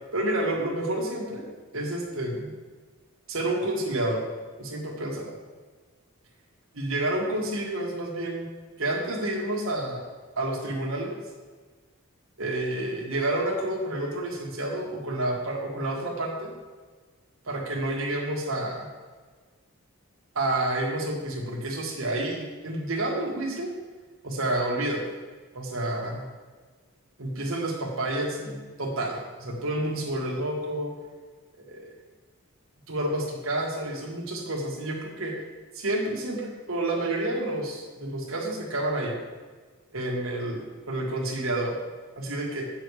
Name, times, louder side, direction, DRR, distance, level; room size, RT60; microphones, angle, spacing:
voice 1, 0.1-1.5 1.7-2.5 3.3-4.2 4.6-5.3 6.7-8.5 8.8-10.1 10.4-11.1 12.4-16.5 17.5-18.9 20.4-23.7 24.2-25.0 25.5-26.2 27.2-30.9 31.6-31.9 32.9-35.3 35.7-39.1 39.9-41.8 42.2-42.7, right 1 dB, 65° right, -1 dB, 1.6 m, -29 dB
8.2 x 6.2 x 4.8 m, 1.4 s
head